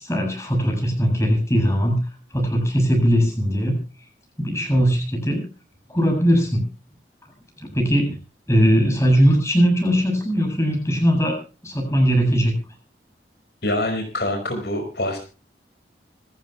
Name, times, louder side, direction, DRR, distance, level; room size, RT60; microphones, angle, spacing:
voice 1, 0.0-2.0 2.3-3.8 4.4-5.4 5.9-6.6 7.6-8.2 8.5-11.4 11.6-12.5, equal, 15° left, 2 dB, 7.8 m, -19 dB
voice 2, 13.6-15.2, left 1 dB, 70° left, 4 dB, 5.6 m, -25 dB
27.0 x 14.5 x 2.3 m, 0.34 s
head